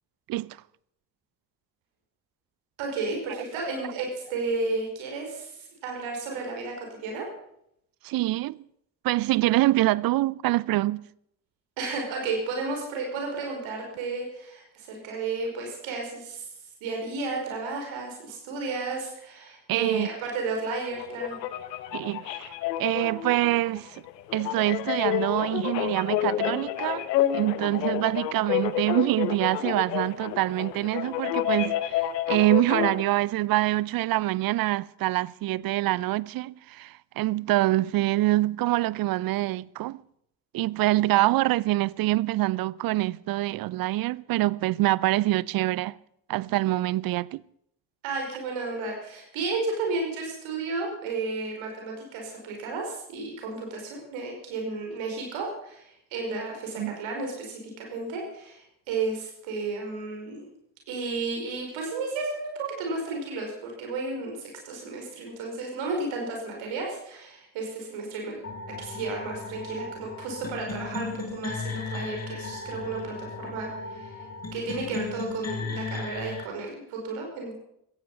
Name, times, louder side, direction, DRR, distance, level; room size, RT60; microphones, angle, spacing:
voice 1, 2.8-7.3 11.8-16.5 16.8-21.4 48.0-60.5 60.9-68.4 68.8-77.5, right 3 dB, 65° right, 5.1 m, -33 dB
voice 2, 8.0-8.6 9.0-11.0 19.7-20.1 21.9-22.5 22.8-24.0 24.3-40.0 40.5-46.0 46.3-47.4 56.8-56.9, right 17 dB, 45° right, 0.5 m, -25 dB
sound 1, 20.9-33.0, left 12 dB, 75° left, 0.9 m, -29 dB
sound 2, 68.4-76.4, left 4 dB, 30° left, 4.7 m, -36 dB
16.5 x 15.0 x 5.5 m
figure-of-eight pair, 40°, 49 cm